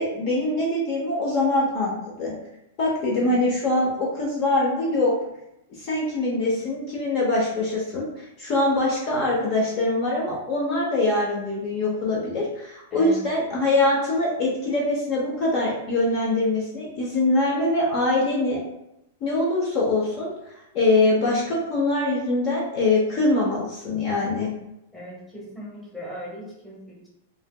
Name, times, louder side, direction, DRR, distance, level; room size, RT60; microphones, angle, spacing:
voice 1, 0.0-2.3 2.8-5.1 5.8-18.6 19.2-20.3 20.7-24.5, left 2 dB, 35° left, -4 dB, 0.7 m, -23 dB
voice 2, 3.1-3.5 12.9-13.2 24.9-27.1, equal, 5° left, -6 dB, 0.9 m, -39 dB
3.3 x 2.7 x 2.2 m, 0.86 s
supercardioid pair, 160°, 0 cm